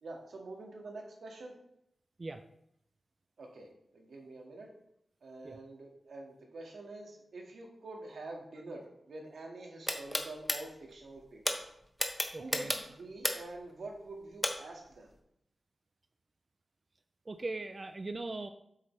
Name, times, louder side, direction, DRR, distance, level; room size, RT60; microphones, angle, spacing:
voice 1, 0.0-1.6 3.4-4.7 5.2-11.6 12.4-15.1, right 2 dB, 85° right, 0 dB, 1.8 m, -46 dB
sound 1, 9.9-10.6 11.5-11.6 12.0-13.6 14.4-14.5, equal, 5° left, 0.8 m, -31 dB
voice 2, 12.3-12.7 17.3-18.5, right 2 dB, 30° right, 8 dB, 0.4 m, -39 dB
8.1 x 7.5 x 3.3 m, 0.77 s
wide cardioid pair, 180°, 0 cm